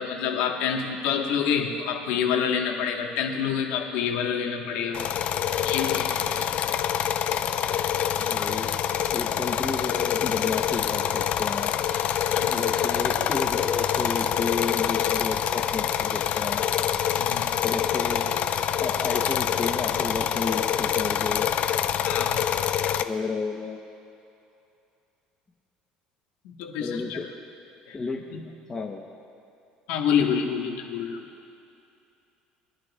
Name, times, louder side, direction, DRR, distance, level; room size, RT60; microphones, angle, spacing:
voice 1, 0.0-5.0 5.6-6.1 12.3-12.7 17.1-17.5 22.0-22.4 26.5-27.2 27.9-28.0 28.3-28.4 29.9-31.2, left 7 dB, 90° left, 2 dB, 1.4 m, -27 dB
sound 1, 4.9-23.0, left 9 dB, 50° left, 0.5 m, -26 dB
voice 2, 8.3-8.7 9.1-11.7 12.5-16.6 17.6-18.3 18.8-21.5 23.0-23.8 26.8-27.3 27.9-29.0, left 4 dB, 20° left, 1 dB, 0.9 m, -32 dB
23.5 x 11.5 x 2.4 m, 2.7 s
cardioid pair, 125°, 3 cm